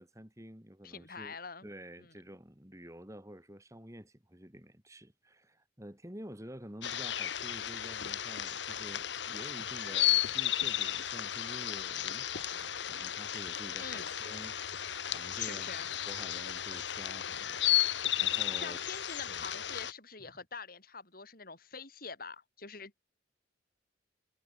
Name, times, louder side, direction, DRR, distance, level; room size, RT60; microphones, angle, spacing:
voice 1, 0.0-1.4 1.6-18.8 19.3-19.5, equal, 15° right, 4.2 m, -50 dB
voice 2, 0.8-1.7 2.0-2.1 13.8-14.1 15.4-15.9 18.6-23.0, left 5 dB, 50° left, 4.6 m, -45 dB
sound 1, 6.8-19.9, left 12 dB, 70° left, 1.4 m, -34 dB
head